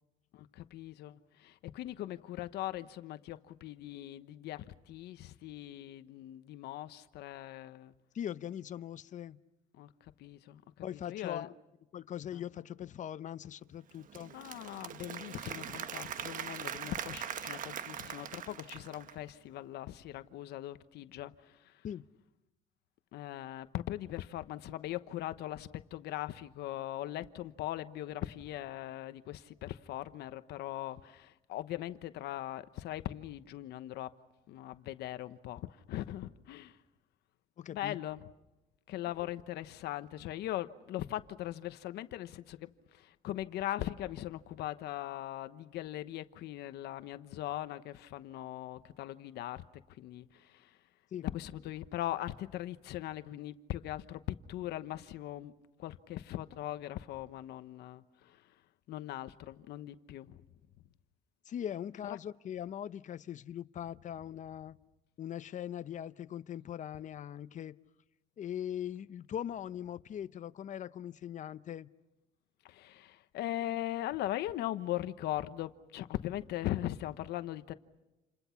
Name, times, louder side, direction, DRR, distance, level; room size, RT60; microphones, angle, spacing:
voice 1, 0.3-7.9 9.7-10.6 10.9-11.5 12.3-12.4 14.3-21.8 23.1-34.1 34.5-36.8 37.7-38.3 38.9-49.6 49.9-50.8 51.2-58.5 58.9-60.4 62.1-62.2 72.6-77.7, left 14 dB, 75° left, 1.1 m, -40 dB
voice 2, 8.1-9.4 10.8-11.5 11.9-14.3 21.8-22.0 37.6-38.0 51.1-51.3 61.5-64.8 65.2-67.8 68.4-71.9, left 10 dB, 45° left, 0.8 m, -41 dB
Applause / Crowd, 13.9-19.3, right 9 dB, 55° right, 1.1 m, -42 dB
29.5 x 29.0 x 5.9 m
cardioid pair, 110°, 17 cm